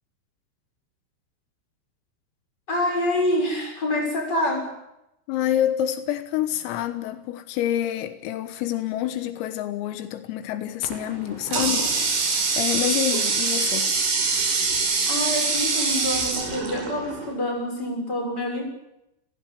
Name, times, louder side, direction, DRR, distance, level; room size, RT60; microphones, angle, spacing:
voice 1, 2.7-4.7 15.1-18.6, left 1 dB, 20° left, 7.1 m, -26 dB
voice 2, 5.3-13.9, left 11 dB, 85° left, 4.0 m, -27 dB
Water tap faucet, 10.9-17.3, right 4 dB, 60° right, 7.3 m, -24 dB
30.0 x 16.5 x 8.6 m
omnidirectional pair, 6.0 m